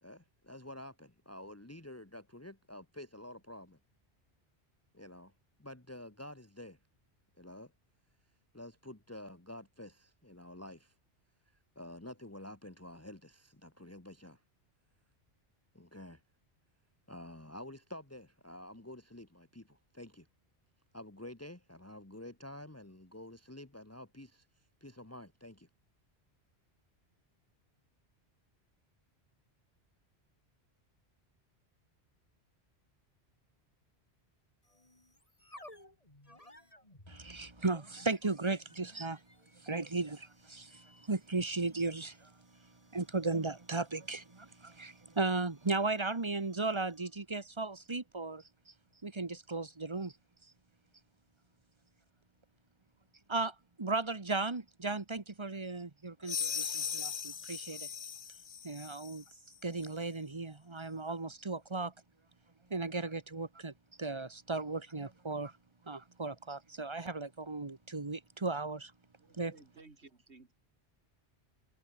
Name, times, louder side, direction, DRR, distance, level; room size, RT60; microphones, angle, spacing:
voice 1, 0.0-3.8 4.9-5.3 5.6-6.8 7.4-7.7 8.5-10.9 11.7-14.4 15.7-16.2 17.1-20.3 20.9-24.5 24.8-25.7, left 1 dB, 15° left, 1.7 m, -49 dB
sound 1, 34.6-47.1, left 1 dB, 35° left, 5.2 m, -60 dB
voice 2, 37.1-39.2 39.5-48.7 49.0-50.1 53.3-57.9 58.6-59.2 59.6-61.9 62.7-65.6 65.8-68.9 69.3-69.6, right 3 dB, 25° right, 1.4 m, -36 dB
sound 2, 56.2-59.2, left 7 dB, 50° left, 1.0 m, -38 dB
voice 3, 69.2-70.5, right 3 dB, 85° right, 3.3 m, -58 dB
omnidirectional pair, 1.1 m